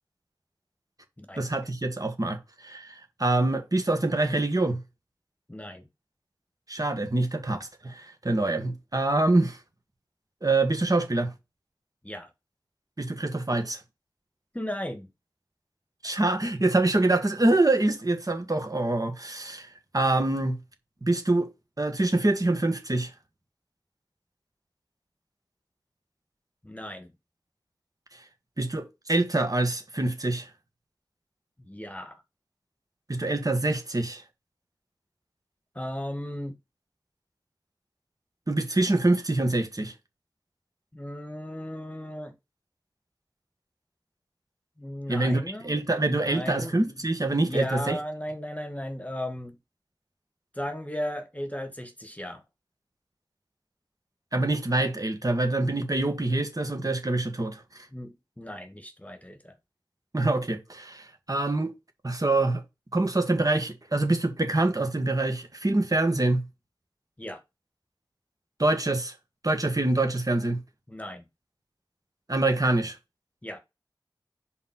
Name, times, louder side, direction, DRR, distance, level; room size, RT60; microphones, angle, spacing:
voice 1, 1.4-4.8 6.7-9.6 10.4-11.3 13.0-13.8 16.0-20.6 21.0-21.5 21.8-23.1 28.6-30.5 33.1-34.2 38.5-39.9 45.1-48.0 54.3-57.6 60.1-61.7 62.0-62.6 62.9-66.4 68.6-69.1 69.4-70.6 72.3-73.0, right 2 dB, 45° right, 1.6 m, -25 dB
voice 2, 5.5-5.9 12.0-12.3 14.5-15.1 26.6-27.1 31.7-32.2 35.7-36.5 40.9-42.3 44.8-45.8 46.2-46.8 47.4-49.6 50.5-52.4 57.9-59.5 67.2-67.4 70.9-71.3 73.4-73.6, left 1 dB, 15° left, 1.3 m, -36 dB
5.2 x 4.2 x 5.7 m
wide cardioid pair, 45°, 8 cm